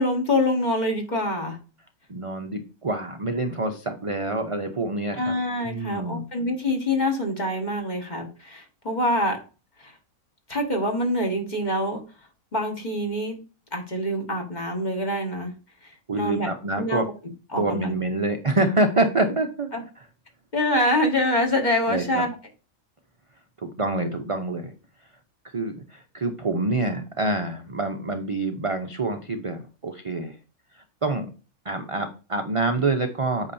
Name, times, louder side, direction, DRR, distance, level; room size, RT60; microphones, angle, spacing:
voice 1, 0.0-1.6 5.1-9.4 9.8-9.9 10.5-12.0 12.5-13.4 13.7-15.6 15.8-16.5 16.8-17.1 17.5-18.0 19.7-19.8 20.5-22.4, left 1 dB, 30° left, 2 dB, 1.7 m, -25 dB
voice 2, 2.1-5.3 5.6-6.2 16.1-17.0 17.6-19.7 21.9-22.2 23.6-24.7 25.4-30.4 30.7-31.3 31.6-33.5, right 2 dB, 35° right, 5 dB, 0.5 m, -26 dB
8.6 x 6.1 x 2.7 m, 0.34 s
omnidirectional pair, 1.5 m